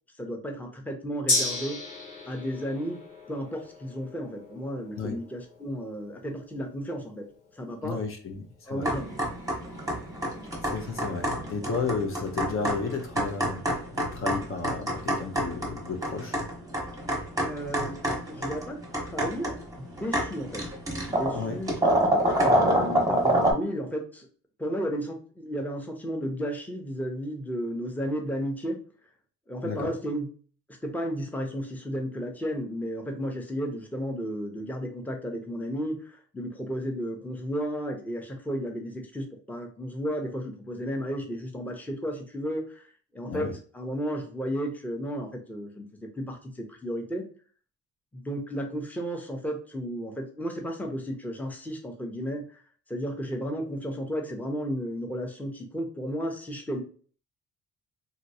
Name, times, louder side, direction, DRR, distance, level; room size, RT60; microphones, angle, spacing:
voice 1, 0.2-1.8 2.3-3.0 3.3-7.3 7.6-8.0 8.7-9.1 17.4-20.6 21.1-21.7 22.4-24.3 24.6-28.8 29.5-30.3 30.8-47.2 48.1-52.5 52.9-56.8, equal, 5° left, 2 dB, 0.7 m, -33 dB
Gong, 1.3-9.0 9.4-9.5, left 2 dB, 75° left, 1.1 m, -35 dB
voice 2, 7.8-8.8 10.6-13.6 14.0-16.4 21.3-21.6 29.6-29.9 43.3-43.5, left 5 dB, 45° left, 4 dB, 0.6 m, -33 dB
sound 1, 8.8-23.5, right 1 dB, 10° right, 1.0 m, -28 dB
2.9 x 2.6 x 2.7 m, 0.41 s
cardioid pair, 90°, 30 cm